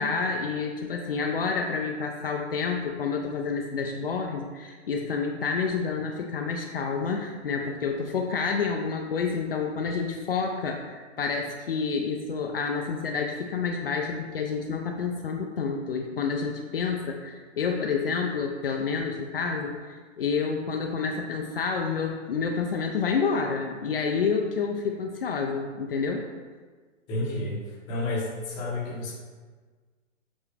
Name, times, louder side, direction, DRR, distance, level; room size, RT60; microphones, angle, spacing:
voice 1, 0.0-26.2, left 5 dB, 50° left, 2 dB, 0.6 m, -29 dB
voice 2, 27.1-27.6 27.9-29.1, left 2 dB, 10° left, -6 dB, 0.8 m, -30 dB
7.2 x 4.2 x 3.4 m, 1.5 s
hypercardioid pair, 165°, 38 cm